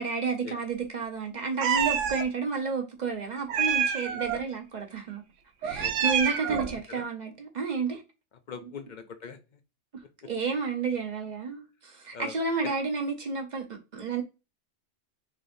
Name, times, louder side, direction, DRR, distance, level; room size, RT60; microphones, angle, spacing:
voice 1, 0.0-5.2 5.6-8.0 10.2-13.7 13.9-14.2, right 4 dB, 45° right, 0.7 m, -31 dB
Meow, 1.6-2.2 3.5-4.4 5.6-6.8, right 8 dB, 90° right, 1.0 m, -27 dB
voice 2, 3.8-4.2 5.8-6.1 6.5-6.6 6.9-7.0 8.5-9.6 10.2-10.3 12.1-12.3 12.6-12.7, left 6 dB, 50° left, 0.6 m, -42 dB
3.9 x 3.3 x 2.6 m
omnidirectional pair, 1.2 m